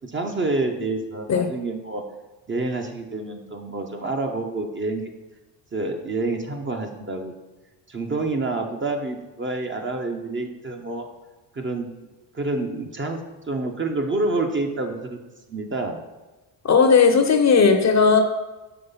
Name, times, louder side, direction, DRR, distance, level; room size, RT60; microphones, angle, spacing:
voice 1, 0.0-2.0 2.5-5.1 5.7-7.3 7.9-11.1 11.5-11.9 12.3-13.2 13.5-15.2 15.5-16.0, right 2 dB, 25° right, 3 dB, 0.7 m, -28 dB
voice 2, 16.6-18.2, left 5 dB, 35° left, 6 dB, 0.7 m, -16 dB
5.7 x 3.1 x 5.6 m, 1.1 s
supercardioid pair, 75°, 48 cm